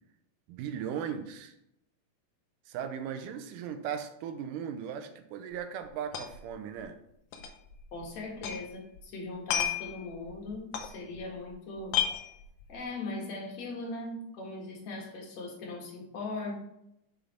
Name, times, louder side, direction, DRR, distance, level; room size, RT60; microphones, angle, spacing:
voice 1, 0.5-1.5 2.7-7.0, right 8 dB, 90° right, 8 dB, 2.2 m, -37 dB
sound 1, 5.5-5.6 5.8-6.5 6.8-6.9 7.3-8.7 9.0-11.5 11.8-12.8, left 9 dB, 85° left, 2.4 m, -33 dB
voice 2, 7.9-12.0 12.7-16.5, left 2 dB, 60° left, -2 dB, 2.9 m, -39 dB
6.6 x 5.0 x 4.4 m, 0.79 s
omnidirectional pair, 3.7 m